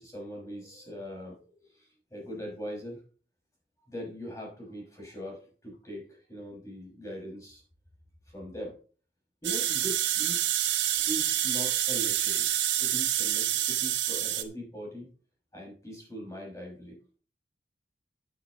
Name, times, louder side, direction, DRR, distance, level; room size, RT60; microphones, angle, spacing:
voice 1, 0.0-3.0 3.9-7.6 8.3-8.8 9.4-10.4 10.7-12.5 12.8-15.1 15.5-17.0, equal, 15° left, -2 dB, 5.8 m, -41 dB
sound 1, 9.4-14.4, right 11 dB, 85° right, 1.4 m, -27 dB
13.5 x 9.2 x 3.1 m, 0.40 s
head